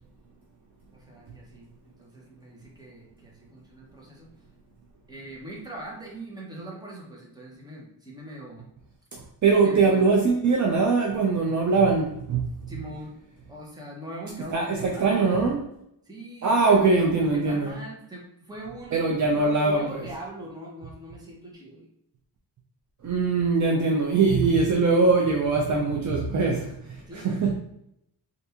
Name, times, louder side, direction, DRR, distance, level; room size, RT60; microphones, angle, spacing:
voice 1, 0.9-4.3 5.1-8.6 9.6-10.2 12.7-13.1 13.5-15.5 16.0-19.0 19.3-21.9 27.1-27.5, right 1 dB, 10° right, 0.8 m, -41 dB
voice 2, 9.1-12.4 14.5-15.6 16.4-17.7 18.9-20.1 23.0-27.5, right 4 dB, 45° right, 0.5 m, -22 dB
3.5 x 2.5 x 2.8 m
wide cardioid pair, 145°, 41 cm